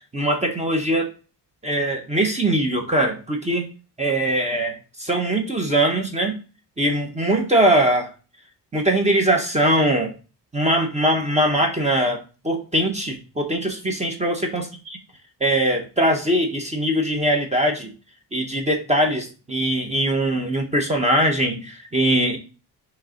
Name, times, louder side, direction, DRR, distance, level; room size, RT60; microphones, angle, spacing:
voice 1, 0.1-1.1 1.6-3.7 4.0-6.4 6.8-8.1 8.7-10.1 10.5-15.0 15.4-17.9 18.3-22.4, right 1 dB, 15° right, 3 dB, 1.1 m, -21 dB
6.4 x 3.3 x 5.1 m, 0.34 s
cardioid pair, 130°, 40 cm